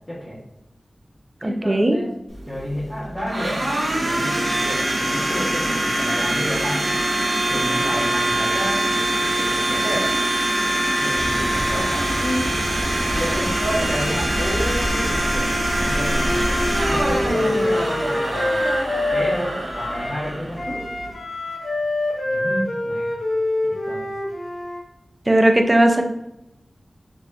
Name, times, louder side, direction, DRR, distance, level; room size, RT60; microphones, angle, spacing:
voice 1, 0.1-0.4 1.4-2.1 2.5-6.9 7.4-10.1 10.9-12.5 13.1-18.6 19.1-20.9 22.2-23.2 23.6-24.1, equal, 15° left, -9 dB, 1.1 m, -30 dB
voice 2, 1.4-2.0 25.3-26.0, right 1 dB, 30° right, 5 dB, 0.5 m, -17 dB
Domestic sounds home sounds, 2.3-21.1, right 1 dB, 80° right, 0.8 m, -24 dB
Bird, 11.1-17.3, equal, 40° left, 0.8 m, -28 dB
Wind instrument woodwind instrument, 16.2-20.2 20.5-24.8, left 1 dB, 70° left, 0.9 m, -25 dB
3.4 x 2.5 x 3.4 m, 0.85 s
wide cardioid pair, 70°, 0 cm